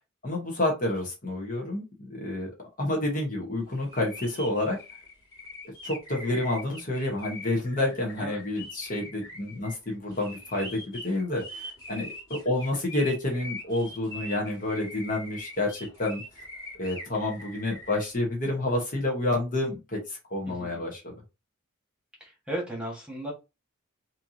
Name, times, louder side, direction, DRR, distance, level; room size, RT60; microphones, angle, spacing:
voice 1, 0.2-1.8 2.1-2.5 2.8-4.8 5.8-16.2 16.8-21.0, left 2 dB, 40° left, 0 dB, 1.1 m, -29 dB
sound 1, 3.8-18.0, left 1 dB, 15° left, 1.9 m, -43 dB
voice 2, 20.5-20.9 22.2-23.3, right 1 dB, 5° right, -2 dB, 1.5 m, -35 dB
4.4 x 2.8 x 2.7 m, 0.26 s
head